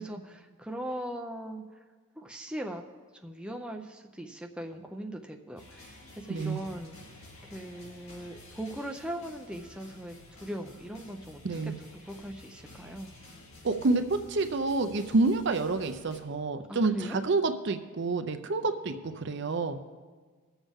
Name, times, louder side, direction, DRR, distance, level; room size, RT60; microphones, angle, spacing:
voice 1, 0.0-1.8 2.2-2.8 3.2-7.0 7.4-11.6 12.0-13.1 16.7-17.2, right 1 dB, 5° right, 2 dB, 0.5 m, -40 dB
sound 1, 5.6-16.2, left 2 dB, 75° left, 2.7 m, -52 dB
voice 2, 13.6-19.8, right 3 dB, 50° right, 8 dB, 0.5 m, -28 dB
20.0 x 7.2 x 3.6 m, 1.5 s
head